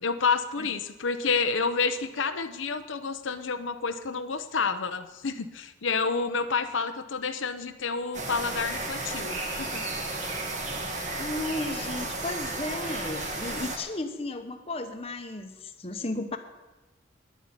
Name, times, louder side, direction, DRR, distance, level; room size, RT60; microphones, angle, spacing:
voice 1, 0.0-9.8, left 4 dB, 85° left, 8 dB, 0.8 m, -29 dB
sound 1, 8.1-13.8, right 2 dB, 40° right, 2.0 m, -33 dB
voice 2, 11.1-16.4, left 2 dB, 30° left, 6 dB, 1.0 m, -34 dB
10.0 x 8.4 x 9.7 m, 1.1 s
head